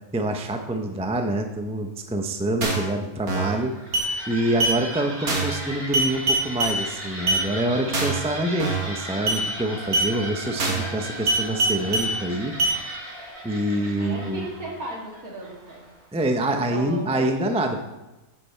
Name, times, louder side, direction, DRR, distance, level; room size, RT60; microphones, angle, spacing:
voice 1, 0.1-3.7 4.3-12.5 13.4-14.5 16.1-17.9, right 1 dB, 10° right, 5 dB, 0.4 m, -26 dB
sound 1, 2.6-2.9 3.3-3.6 3.9-4.1 4.6-4.8 5.3-5.6 5.9-6.8 7.3-7.4 7.9-8.2 8.6-8.9 9.3-9.4 9.9-10.1 10.6-10.9 11.3-12.1 12.6-12.8, right 2 dB, 85° right, 2.3 m, -23 dB
sound 2, 3.6-16.1, equal, 40° right, 2.9 m, -37 dB
voice 2, 14.0-15.8 16.5-17.2, right 1 dB, 70° right, -2 dB, 2.7 m, -35 dB
8.5 x 8.5 x 4.4 m, 1.0 s
omnidirectional pair, 1.6 m